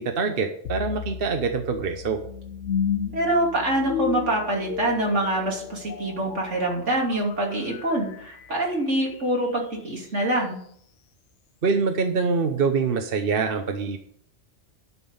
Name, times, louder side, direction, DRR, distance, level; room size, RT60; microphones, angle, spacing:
voice 1, 0.0-2.2 11.6-14.0, right 5 dB, 55° right, 5 dB, 1.1 m, -24 dB
sound 1, 0.6-9.8, left 8 dB, 90° left, 1.1 m, -34 dB
voice 2, 3.1-10.6, right 1 dB, 75° right, -2 dB, 3.2 m, -25 dB
11.0 x 6.0 x 7.2 m, 0.66 s
omnidirectional pair, 1.2 m